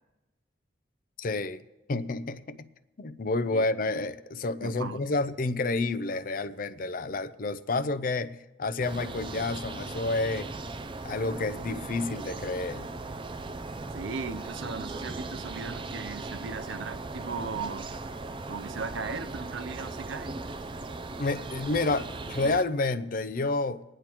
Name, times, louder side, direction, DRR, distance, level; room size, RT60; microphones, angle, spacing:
voice 1, 1.2-1.6 1.9-2.7 3.0-10.5 11.0-12.9 21.2-23.8, left 3 dB, 45° left, 0.5 m, -29 dB
voice 2, 4.6-5.0 13.9-17.9 18.5-20.4, right 5 dB, 80° right, 0.5 m, -37 dB
sound 1, 8.8-22.6, right 3 dB, 25° right, 0.4 m, -38 dB
27.0 x 10.0 x 3.0 m
head